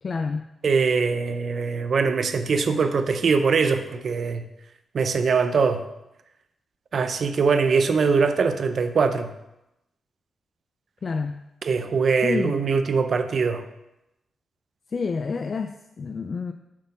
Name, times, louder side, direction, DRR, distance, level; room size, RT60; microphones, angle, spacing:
voice 1, 0.0-0.5 11.0-11.4 12.2-12.6 14.9-16.5, left 4 dB, 55° left, 7 dB, 0.4 m, -28 dB
voice 2, 0.6-4.5 4.9-5.8 6.9-9.3 11.6-13.7, right 5 dB, 65° right, 9 dB, 0.5 m, -22 dB
7.3 x 4.0 x 5.4 m, 0.91 s
cardioid pair, 60°, 0 cm